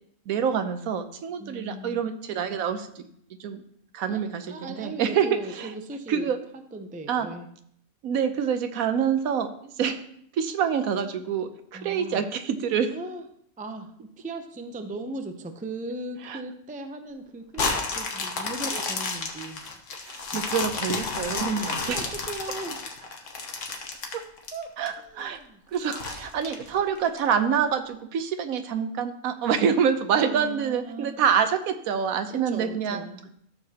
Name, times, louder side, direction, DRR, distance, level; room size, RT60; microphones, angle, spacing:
voice 1, 0.3-3.1 3.4-3.6 3.9-5.3 5.5-5.7 6.1-6.4 7.1-7.3 8.0-10.0 10.3-12.9 16.3-16.4 18.7-18.8 20.1-22.1 24.1-24.2 24.8-25.4 25.7-33.1, right 7 dB, 85° right, 9 dB, 1.2 m, -26 dB
voice 2, 1.4-2.0 3.9-7.5 11.7-12.3 12.9-13.2 13.6-19.8 21.5-23.0 24.5-25.6 30.2-31.2 32.3-33.3, right 2 dB, 15° right, 6 dB, 0.3 m, -38 dB
sound 1, 17.5-24.9 25.3-25.4 25.9-27.2 27.7-27.8, left 4 dB, 65° left, 1.5 m, -31 dB
13.0 x 6.8 x 2.9 m, 0.69 s
omnidirectional pair, 1.4 m